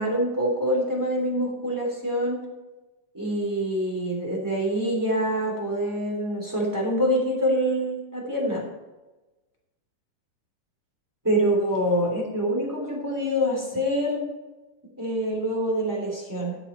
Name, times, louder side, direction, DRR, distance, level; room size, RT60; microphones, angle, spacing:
voice 1, 0.0-2.4 3.1-8.6 11.2-14.2 15.0-16.6, equal, 5° right, -2 dB, 2.0 m, -25 dB
13.0 x 7.3 x 4.4 m, 1.1 s
omnidirectional pair, 5.0 m